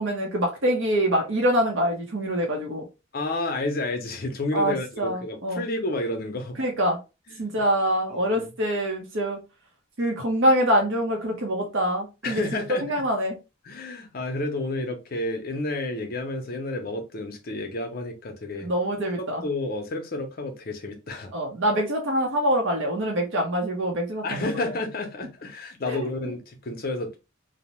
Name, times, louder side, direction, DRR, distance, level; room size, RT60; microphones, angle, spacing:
voice 1, 0.0-2.8 4.5-5.6 6.6-7.0 7.4-9.4 10.0-13.3 18.6-19.4 21.3-24.7 25.9-26.1, equal, 65° right, 0.6 m, -25 dB
voice 2, 3.1-6.6 7.3-7.5 8.1-8.5 12.2-13.0 13.6-18.7 19.2-21.3 24.2-27.2, left 2 dB, 45° left, 0.6 m, -31 dB
2.7 x 2.0 x 3.0 m
head